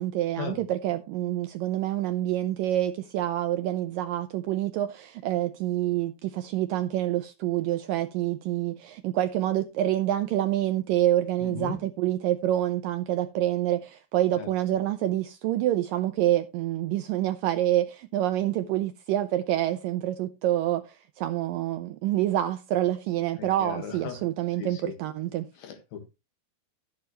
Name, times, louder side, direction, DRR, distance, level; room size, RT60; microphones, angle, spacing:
voice 1, 0.0-25.5, right 13 dB, 85° right, 1.9 m, -27 dB
voice 2, 11.4-11.8 14.4-14.5 23.4-24.2 24.6-24.9 25.6-26.1, left 7 dB, 70° left, 3.3 m, -37 dB
12.0 x 9.2 x 3.1 m
omnidirectional pair, 4.7 m